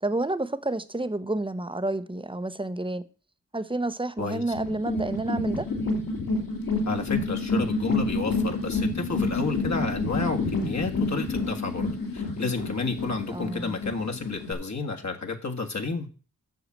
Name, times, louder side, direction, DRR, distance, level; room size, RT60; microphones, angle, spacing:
voice 1, 0.0-3.0 3.5-5.6 13.3-13.8, right 2 dB, 15° right, 0.8 m, -30 dB
sound 1, 4.5-14.5, left 3 dB, 70° left, 2.9 m, -29 dB
voice 2, 6.8-11.9 12.1-16.1, left 4 dB, 50° left, 1.6 m, -31 dB
8.1 x 6.5 x 7.3 m
wide cardioid pair, 70°, 35 cm